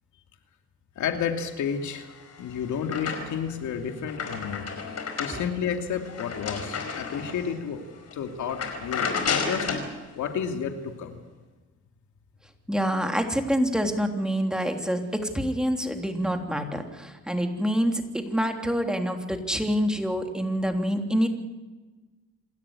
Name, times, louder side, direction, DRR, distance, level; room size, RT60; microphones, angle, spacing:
voice 1, 1.0-2.1 2.4-4.7 5.2-7.8 8.1-9.7 10.2-11.2, left 7 dB, 75° left, 5 dB, 2.5 m, -31 dB
sound 1, 2.0-3.5 3.9-7.5 8.0-8.1 8.5-9.9, left 5 dB, 55° left, 5.0 m, -32 dB
voice 2, 12.7-21.3, equal, ahead, 4 dB, 3.3 m, -26 dB
27.5 x 13.5 x 9.8 m, 1.2 s
cardioid pair, 90°, 30 cm